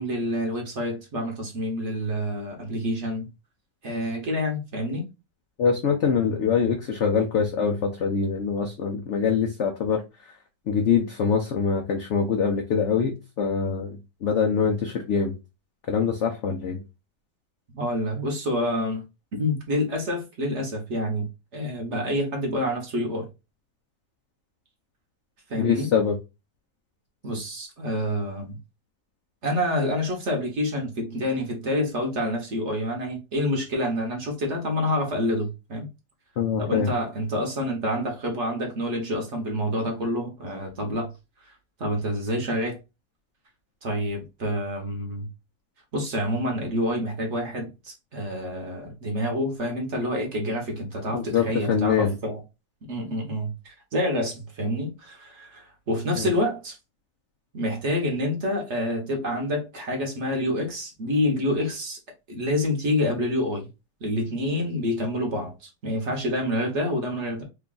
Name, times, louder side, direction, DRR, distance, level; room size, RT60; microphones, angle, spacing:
voice 1, 0.0-3.3 3.8-5.1 17.7-19.0 19.3-21.3 21.5-23.3 25.5-25.9 27.2-28.6 29.4-35.9 36.6-41.1 41.4-41.5 41.8-42.8 43.8-45.3 45.9-52.4 52.9-56.8 57.5-62.0 62.3-63.7 64.0-67.4, left 1 dB, 50° right, 1.0 m, -27 dB
voice 2, 5.6-10.0 10.7-13.1 13.4-15.4 15.9-16.8 25.6-26.2 36.4-36.9 51.1-52.1 56.2-56.3, left 6 dB, 85° left, 0.6 m, -24 dB
3.2 x 2.3 x 3.7 m
omnidirectional pair, 1.9 m